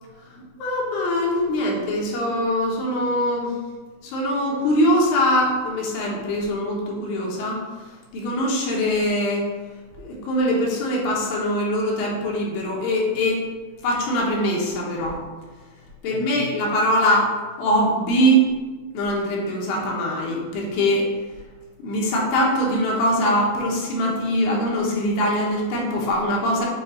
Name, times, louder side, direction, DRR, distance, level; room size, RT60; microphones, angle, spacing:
voice 1, 0.3-3.5 4.0-7.6 8.1-9.5 10.0-13.5 13.8-15.2 16.0-17.3 17.6-18.4 18.9-21.1 21.8-26.7, equal, 75° left, -2 dB, 2.8 m, -22 dB
7.6 x 2.9 x 4.3 m, 1.3 s
omnidirectional pair, 4.2 m